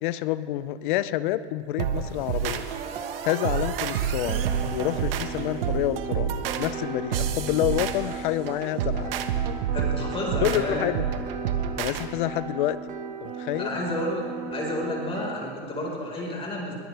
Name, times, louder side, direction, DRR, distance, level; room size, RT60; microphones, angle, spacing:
voice 1, 0.0-2.7 3.2-4.5 4.7-9.1 10.4-11.0 11.8-12.8 13.2-13.8, left 14 dB, 55° left, 15 dB, 0.8 m, -28 dB
sound 1, 1.8-12.1, right 8 dB, 70° right, 1.4 m, -29 dB
sound 2, 2.7-15.3, right 6 dB, 25° right, 1.3 m, -37 dB
voice 2, 9.7-10.8 13.6-14.2 14.5-16.7, left 1 dB, 20° left, -2 dB, 4.9 m, -31 dB
22.0 x 18.0 x 3.5 m, 2.2 s
supercardioid pair, 140°, 29 cm